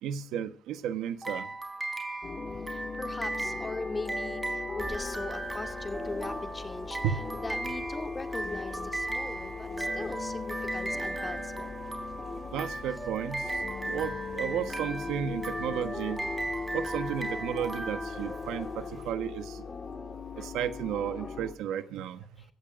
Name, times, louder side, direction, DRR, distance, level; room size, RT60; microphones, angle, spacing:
voice 1, 0.0-1.5 7.0-7.3 7.6-7.7 12.5-16.2 16.7-19.7 20.4-22.3, right 9 dB, 90° right, 10 dB, 1.2 m, -33 dB
sound 1, 1.2-18.9, right 2 dB, 15° right, 4.2 m, -37 dB
sound 2, 2.2-21.6, left 4 dB, 40° left, 2.3 m, -39 dB
voice 2, 2.7-7.0 7.3-11.7 18.1-18.9 19.6-19.7 20.1-20.5 21.2-21.3, left 3 dB, 25° left, 6 dB, 2.3 m, -40 dB
sound 3, 4.8-19.1, right 2 dB, 30° right, 6.5 m, -52 dB
25.0 x 15.0 x 2.5 m, 0.41 s
cardioid pair, 90°, 0 cm